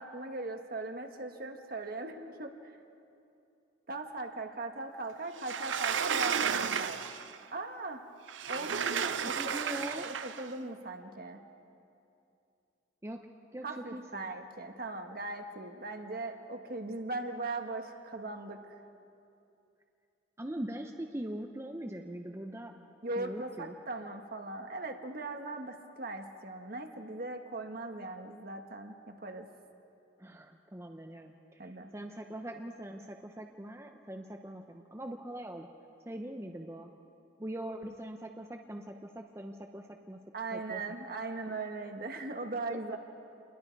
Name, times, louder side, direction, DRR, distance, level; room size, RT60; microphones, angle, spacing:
voice 1, 0.0-2.5 3.9-7.0 7.5-8.0 8.5-9.4 10.0-11.4 13.6-18.7 23.0-29.5 31.6-31.9 40.3-43.0, right 2 dB, 50° right, 5 dB, 1.4 m, -39 dB
Sliding door, 5.4-7.4 8.3-10.5, right 7 dB, 75° right, 0.7 m, -33 dB
voice 2, 9.2-10.1 13.0-13.2 13.5-14.3 20.4-22.7 23.2-23.7 30.2-35.7 36.1-36.9 37.4-40.2 40.5-40.8, right 1 dB, 15° right, 3 dB, 0.7 m, -42 dB
28.0 x 21.5 x 4.7 m, 2.7 s
head